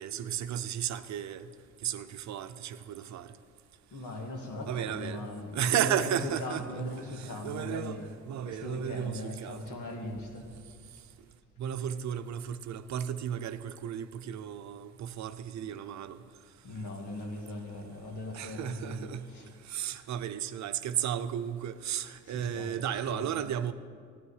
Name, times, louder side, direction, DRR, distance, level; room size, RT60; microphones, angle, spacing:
voice 1, 0.0-1.5 1.8-3.3 4.7-5.3 5.5-9.6 11.6-16.2 18.3-19.3 19.6-23.7, right 9 dB, 65° right, 0.7 m, -34 dB
voice 2, 3.9-8.1 8.5-10.5 15.6-15.7 16.6-19.5 22.2-23.4, left 2 dB, 75° left, 2.0 m, -40 dB
15.5 x 10.0 x 4.9 m
cardioid pair, 90°, 30 cm